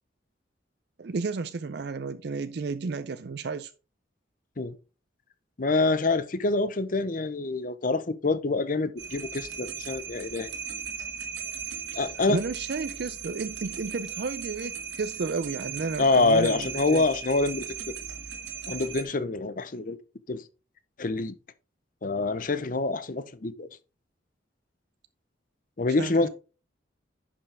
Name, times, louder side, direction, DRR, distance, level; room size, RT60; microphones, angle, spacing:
voice 1, 1.0-3.7 11.9-17.1 26.0-26.3, right 4 dB, 60° right, 0.4 m, -32 dB
voice 2, 5.6-10.5 11.9-12.4 16.0-17.7 18.7-20.0 20.3-20.4 21.0-21.3 22.0-23.7 25.8-26.3, left 3 dB, 45° left, 0.7 m, -26 dB
sound 1, 9.0-19.0, right 7 dB, 75° right, 1.9 m, -38 dB
10.5 x 5.5 x 3.4 m
head